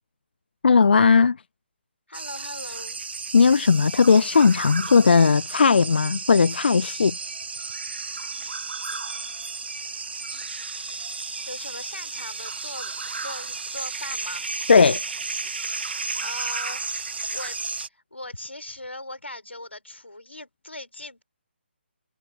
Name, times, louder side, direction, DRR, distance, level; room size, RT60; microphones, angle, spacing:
voice 1, 0.6-1.4 3.3-7.2 14.7-15.0, left 5 dB, 60° left, 0.4 m, -17 dB
voice 2, 2.1-3.0 11.5-14.5 16.2-17.6 17.9-21.2, left 2 dB, 90° left, 3.9 m, -39 dB
sound 1, 2.1-17.9, right 4 dB, 65° right, 1.3 m, -33 dB
figure-of-eight pair, 150°, 6 cm